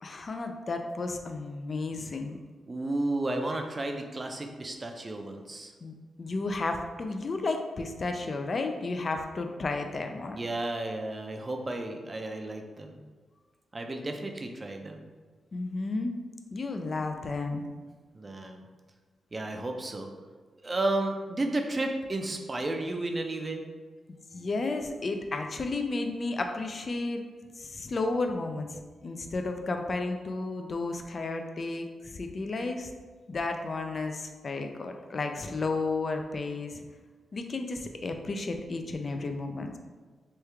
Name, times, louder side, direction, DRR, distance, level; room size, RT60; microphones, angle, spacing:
voice 1, 0.0-2.4 5.8-10.4 15.5-16.1 16.5-17.6 24.3-27.2 27.6-32.9 33.3-36.8 37.3-39.8, left 3 dB, 45° left, 5 dB, 0.3 m, -33 dB
voice 2, 2.7-5.7 10.3-13.0 13.7-15.0 18.1-18.6 19.3-20.1 20.6-23.6, right 2 dB, 30° right, 4 dB, 0.4 m, -32 dB
3.1 x 2.3 x 3.3 m, 1.4 s
cardioid pair, 70°, 0 cm